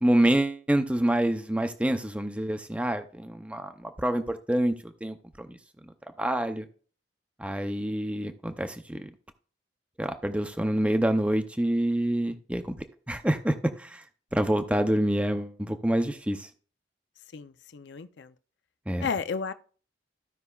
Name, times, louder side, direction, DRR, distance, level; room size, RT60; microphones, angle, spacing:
voice 1, 0.0-5.6 6.2-6.7 7.4-9.1 10.0-12.7 13.1-14.0 14.3-16.5 18.9-19.1, right 1 dB, 5° right, 0.5 m, -27 dB
voice 2, 17.3-18.3 19.0-19.5, left 5 dB, 70° left, 0.5 m, -33 dB
14.5 x 5.5 x 2.3 m
head